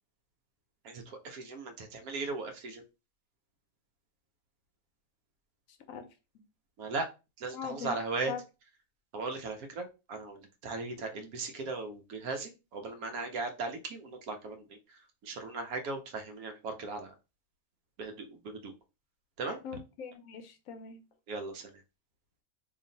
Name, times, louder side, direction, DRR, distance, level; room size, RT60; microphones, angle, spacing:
voice 1, 0.8-2.8 6.8-7.1 7.4-8.3 9.1-14.8 15.2-17.1 18.0-18.7 19.4-19.6 21.3-21.7, right 3 dB, 75° right, 6 dB, 1.1 m, -38 dB
voice 2, 7.5-7.9 8.3-8.4 19.6-21.0, left 6 dB, 70° left, 8 dB, 0.9 m, -41 dB
2.9 x 2.5 x 3.9 m, 0.29 s
omnidirectional pair, 1.5 m